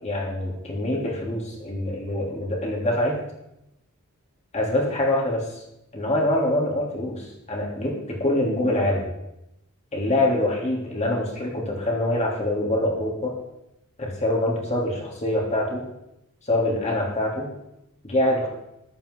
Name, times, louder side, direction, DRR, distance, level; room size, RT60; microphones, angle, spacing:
voice 1, 0.0-3.2 4.5-5.6 5.9-9.1 9.9-13.3 14.0-15.8 16.4-17.5 18.0-18.5, left 1 dB, 30° left, -3 dB, 3.5 m, -25 dB
14.5 x 11.5 x 4.0 m, 0.87 s
head